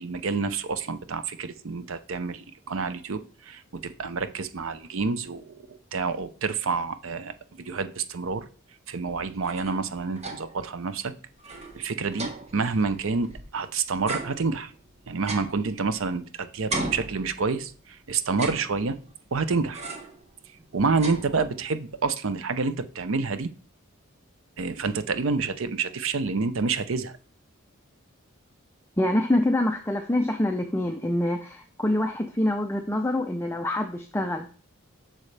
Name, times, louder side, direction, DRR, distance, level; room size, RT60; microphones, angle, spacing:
voice 1, 0.0-8.5 8.9-11.1 11.7-14.7 15.1-19.0 19.3-19.8 20.7-23.5 24.6-27.2, right 4 dB, 65° right, 12 dB, 0.6 m, -28 dB
sound 1, 9.2-10.7 11.0-11.1 11.4-13.6 14.0-16.3 16.7-17.8 18.3-19.2 19.7-20.2 20.6-21.8, right 2 dB, 30° right, 1.1 m, -37 dB
voice 2, 29.0-34.5, left 1 dB, 10° left, 4 dB, 0.5 m, -25 dB
8.4 x 6.2 x 3.3 m, 0.41 s
head